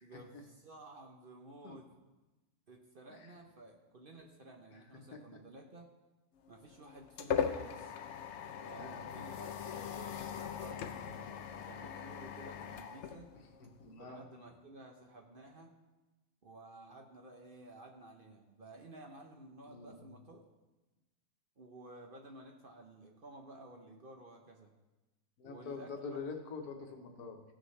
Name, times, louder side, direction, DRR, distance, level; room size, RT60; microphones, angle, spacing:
voice 1, 0.0-1.9 2.7-5.9 6.5-7.9 8.6-13.3 14.0-15.7 16.4-20.4 21.6-24.8 25.4-26.2, right 2 dB, 45° right, 2 dB, 0.8 m, -54 dB
sound 1, 6.5-13.9, left 7 dB, 65° left, 0.8 m, -40 dB
voice 2, 13.6-14.2 19.7-20.1 25.4-27.4, left 4 dB, 85° left, 3 dB, 1.6 m, -45 dB
15.5 x 6.2 x 3.2 m, 1.1 s
omnidirectional pair, 1.6 m